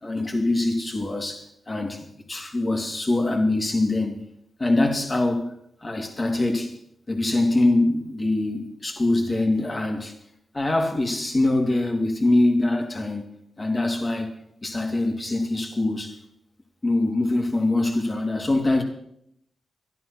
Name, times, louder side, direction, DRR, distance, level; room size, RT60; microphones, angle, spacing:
voice 1, 0.0-4.2 4.6-5.5 5.8-6.7 7.1-10.1 10.5-13.2 13.6-14.3 14.6-16.2 16.8-18.8, left 2 dB, 35° left, 2.7 m, -23 dB
13.0 x 11.0 x 6.0 m
cardioid pair, 65°, 0 cm